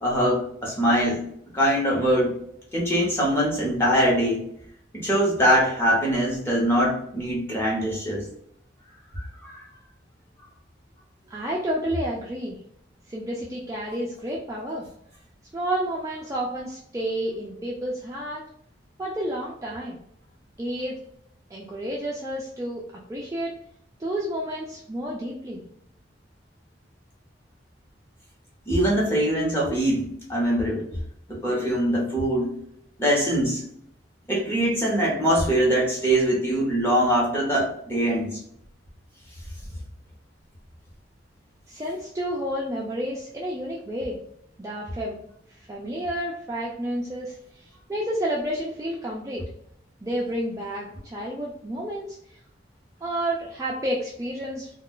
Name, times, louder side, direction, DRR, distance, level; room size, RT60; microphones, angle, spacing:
voice 1, 0.0-1.2 1.5-2.4 2.7-4.4 4.9-8.2 9.2-9.6 28.7-30.9 31.3-32.5 33.0-33.6 34.3-38.4, equal, 15° left, -5 dB, 0.9 m, -23 dB
voice 2, 11.3-12.6 13.1-14.9 15.5-18.4 19.0-20.0 20.6-21.0 21.5-22.8 23.1-23.5 24.0-25.6 41.7-44.2 44.6-45.2 45.7-49.4 50.0-52.2 53.0-54.7, right 1 dB, 15° right, -3 dB, 0.3 m, -30 dB
2.3 x 2.3 x 3.7 m, 0.70 s
head